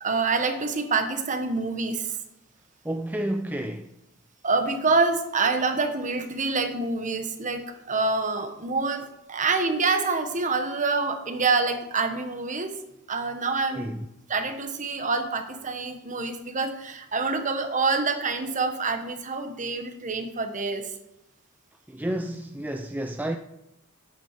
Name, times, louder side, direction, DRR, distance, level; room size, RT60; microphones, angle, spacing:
voice 1, 0.0-2.2 4.4-12.7 13.1-13.9 14.3-21.0, right 4 dB, 35° right, 1.3 m, -26 dB
voice 2, 2.8-3.9 13.7-14.1 21.9-23.4, right 1 dB, 10° right, 0.5 m, -30 dB
9.8 x 8.7 x 6.7 m
head